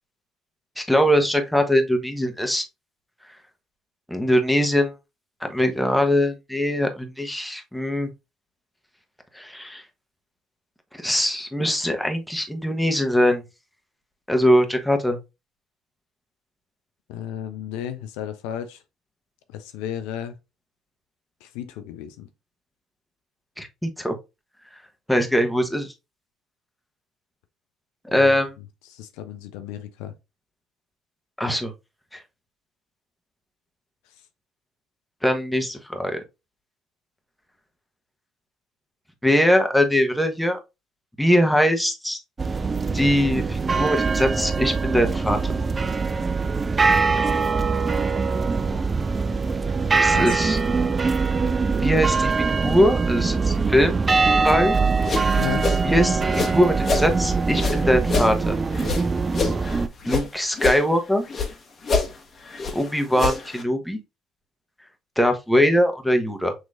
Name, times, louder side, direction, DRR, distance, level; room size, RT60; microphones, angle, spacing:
voice 1, 0.8-2.7 4.1-4.9 5.4-8.1 9.3-9.8 11.0-13.4 14.3-15.2 23.6-24.1 25.1-25.9 28.0-28.5 31.4-31.7 32.1-32.2 35.2-36.2 39.2-40.6 41.2-42.2 42.9-45.6 50.0-50.6 51.8-52.3 52.6-54.0 54.4-54.8 55.3-55.4 55.8-56.2 56.5-58.6 60.0-61.3 62.7-64.0 65.2-66.5, equal, 5° left, 1.1 m, -21 dB
voice 2, 17.1-18.8 19.5-20.4 21.4-22.3 28.1-28.4 28.9-30.1 50.1-50.4 55.4-55.7, left 10 dB, 75° left, 0.5 m, -33 dB
sound 1, 42.4-59.9, right 4 dB, 30° right, 0.4 m, -22 dB
sound 2, 54.8-57.1 57.5-60.3 60.5-61.5 61.8-63.6, left 4 dB, 45° left, 1.3 m, -27 dB
6.3 x 3.0 x 2.5 m
hypercardioid pair, 55°, 0 cm